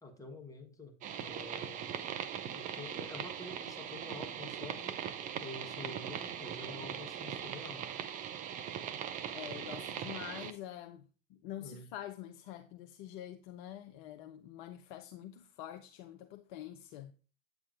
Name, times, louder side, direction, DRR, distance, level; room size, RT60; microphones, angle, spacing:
voice 1, 0.0-2.0 2.5-5.0 5.4-7.9 11.6-11.9, left 2 dB, 10° left, 1.1 m, -48 dB
sound 1, 1.0-10.5, right 9 dB, 20° right, 0.4 m, -40 dB
voice 2, 9.3-17.1, left 12 dB, 40° left, 0.5 m, -46 dB
8.5 x 7.0 x 2.5 m
figure-of-eight pair, 95°, 39 cm